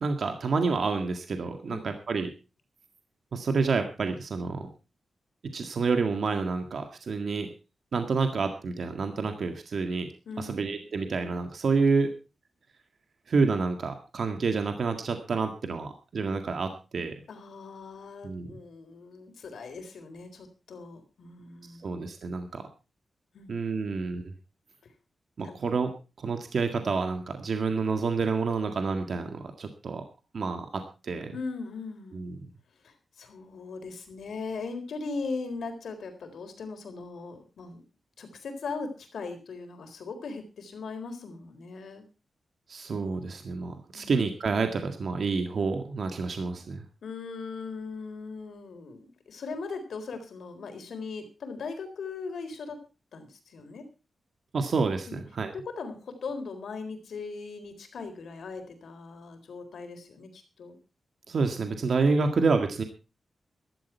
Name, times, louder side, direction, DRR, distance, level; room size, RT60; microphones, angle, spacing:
voice 1, 0.0-2.3 3.3-4.7 5.5-7.5 7.9-10.1 10.4-12.1 13.3-17.1 18.2-18.6 21.8-22.7 23.5-24.3 25.4-25.9 26.2-30.0 30.3-31.4 32.1-32.5 42.7-46.8 54.5-55.5 61.3-62.8, right 4 dB, 65° right, 6 dB, 1.8 m, -28 dB
voice 2, 10.3-10.9 17.3-22.0 23.3-24.0 25.4-25.6 31.3-32.2 32.8-37.8 38.2-42.1 43.9-44.1 47.0-52.8 53.1-53.8 55.1-55.2 55.5-60.8, left 4 dB, 85° left, 7 dB, 4.0 m, -39 dB
15.5 x 13.0 x 4.6 m, 0.32 s
wide cardioid pair, 115°, 0 cm